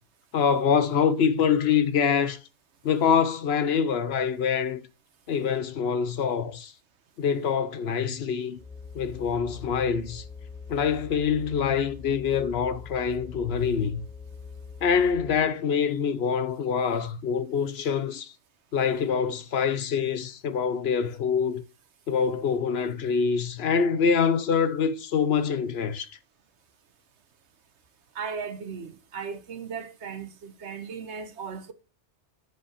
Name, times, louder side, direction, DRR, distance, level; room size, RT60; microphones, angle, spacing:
voice 1, 0.3-2.4 2.8-4.8 5.3-6.7 7.2-8.6 8.9-10.2 10.7-14.0 14.8-18.3 18.7-21.6 22.1-26.1, left 6 dB, 70° left, 1.0 m, -25 dB
sound 1, 8.6-15.5, left 5 dB, 5° left, 1.7 m, -43 dB
voice 2, 28.1-31.7, right 6 dB, 85° right, 1.3 m, -37 dB
8.0 x 5.4 x 4.9 m
omnidirectional pair, 1.1 m